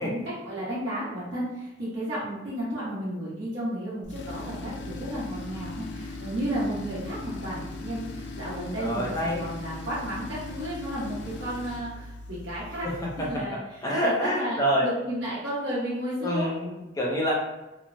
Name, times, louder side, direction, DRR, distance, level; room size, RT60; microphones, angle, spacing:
voice 1, 0.0-9.1 9.4-12.9 13.2-16.5, equal, 85° right, -10 dB, 1.2 m, -33 dB
Tools, 4.0-13.5, left 2 dB, 65° left, 0.4 m, -39 dB
voice 2, 8.8-9.4 12.8-13.3 13.8-14.9 16.2-17.3, equal, 20° left, -3 dB, 0.6 m, -27 dB
3.1 x 2.1 x 2.6 m, 1.0 s
head